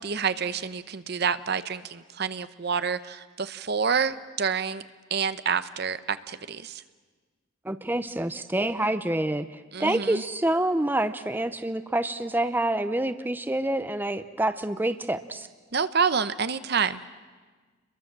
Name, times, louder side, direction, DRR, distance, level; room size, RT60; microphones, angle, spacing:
voice 1, 0.0-4.8 5.1-6.8 9.7-10.2 15.7-17.0, right 6 dB, 55° right, 13 dB, 0.8 m, -28 dB
voice 2, 7.6-15.5, right 1 dB, 10° right, 11 dB, 0.7 m, -27 dB
29.5 x 22.5 x 7.5 m, 1.4 s
head